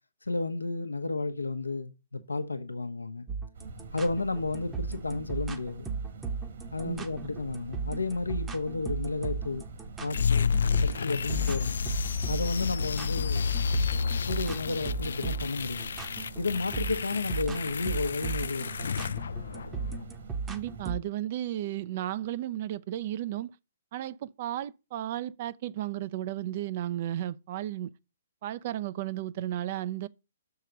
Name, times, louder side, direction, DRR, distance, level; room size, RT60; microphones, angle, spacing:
voice 1, 0.2-3.3 3.9-5.9 6.7-9.6 10.0-11.8 12.3-13.5 14.3-15.9 16.4-18.9, left 3 dB, 85° left, 0.8 m, -32 dB
sound 1, 3.3-21.0, right 5 dB, 10° right, 0.8 m, -36 dB
sound 2, 3.5-20.8, right 4 dB, 60° right, 2.0 m, -44 dB
sound 3, 10.1-20.1, left 6 dB, 65° left, 0.3 m, -31 dB
voice 2, 20.5-23.5 23.9-27.9 28.4-30.1, right 13 dB, 40° right, 0.5 m, -34 dB
6.6 x 4.7 x 6.5 m
figure-of-eight pair, 125°, 0 cm